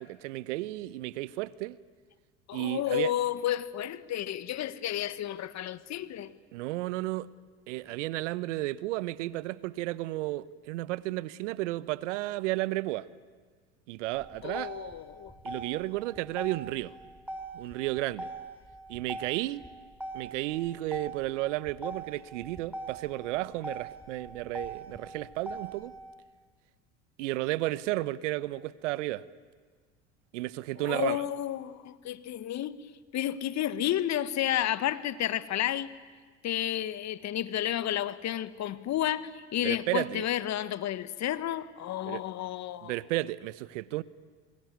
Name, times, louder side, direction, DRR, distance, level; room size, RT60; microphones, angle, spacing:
voice 1, 0.0-1.8 2.5-3.1 6.5-7.3 7.7-13.1 13.9-14.7 15.4-16.9 17.5-18.3 18.9-19.7 20.1-25.9 27.2-29.2 30.3-31.2 39.6-40.3 42.0-42.2 42.8-44.0, right 18 dB, 75° right, 0.9 m, -33 dB
voice 2, 2.5-6.3 14.4-15.3 30.8-32.8 33.1-35.9 36.4-42.9, left 12 dB, 45° left, 1.4 m, -31 dB
Motor vehicle (road), 14.1-26.1, right 2 dB, 5° right, 4.4 m, -42 dB
27.5 x 22.0 x 9.5 m
hypercardioid pair, 75°, 37 cm